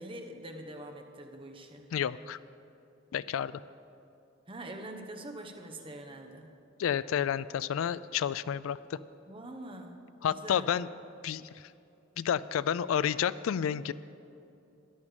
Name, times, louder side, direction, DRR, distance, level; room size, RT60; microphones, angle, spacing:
voice 1, 0.0-1.9 4.5-6.5 9.3-10.0 10.3-10.7, right 1 dB, 25° right, 4 dB, 1.0 m, -44 dB
voice 2, 1.9-2.4 3.1-3.6 6.8-9.0 10.2-10.9 11.2-11.7 12.2-13.9, left 9 dB, 80° left, 18 dB, 0.3 m, -30 dB
14.0 x 11.0 x 4.9 m, 2.7 s
head